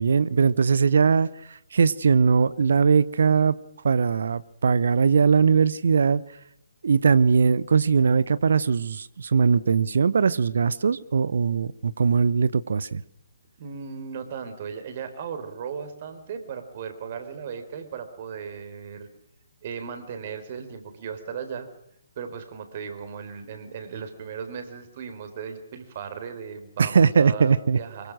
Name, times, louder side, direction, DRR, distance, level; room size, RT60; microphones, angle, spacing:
voice 1, 0.0-3.5 3.8-6.2 6.8-13.0 26.8-27.8, right 5 dB, 60° right, 19 dB, 0.8 m, -20 dB
voice 2, 13.6-19.1 19.6-21.7 22.2-28.1, right 6 dB, 40° right, 8 dB, 4.1 m, -36 dB
24.5 x 23.0 x 6.3 m, 0.79 s
figure-of-eight pair, 135°, 0 cm